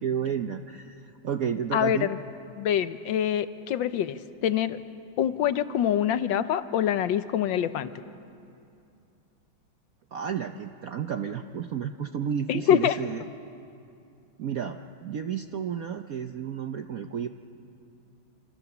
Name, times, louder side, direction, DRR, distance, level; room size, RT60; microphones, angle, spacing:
voice 1, 0.0-2.1 10.1-13.2 14.4-17.3, right 8 dB, 60° right, 6 dB, 1.0 m, -32 dB
voice 2, 1.7-2.2 2.5-4.8 5.2-7.9 12.5-13.0, left 10 dB, 75° left, 12 dB, 1.5 m, -25 dB
27.0 x 26.5 x 7.1 m, 2.5 s
omnidirectional pair, 2.2 m